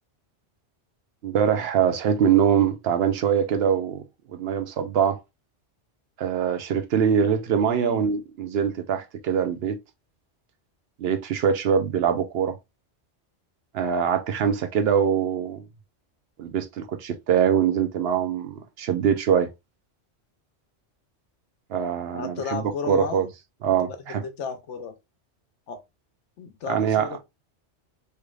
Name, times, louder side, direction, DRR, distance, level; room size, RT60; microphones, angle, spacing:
voice 1, 1.2-4.0 4.3-5.2 6.2-9.8 11.0-12.6 13.7-15.6 16.4-19.5 21.7-23.3 23.6-24.2 26.7-27.1, right 8 dB, 65° right, 0.7 m, -23 dB
voice 2, 7.7-8.1 22.1-23.3 23.8-24.9 25.7-25.8 26.4-27.2, left 5 dB, 90° left, 1.1 m, -34 dB
3.3 x 3.2 x 2.3 m
omnidirectional pair, 1.2 m